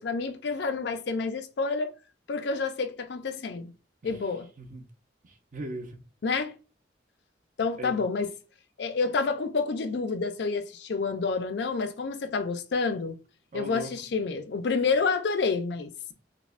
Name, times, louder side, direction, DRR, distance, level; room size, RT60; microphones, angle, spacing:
voice 1, 0.0-1.9 2.3-3.7 4.0-4.5 6.2-6.5 7.6-8.3 8.8-13.2 13.5-15.9, left 4 dB, 65° left, 0.4 m, -28 dB
voice 2, 5.2-6.0 7.8-8.0 13.5-13.9, right 1 dB, 45° right, 0.6 m, -39 dB
5.1 x 2.1 x 2.4 m
head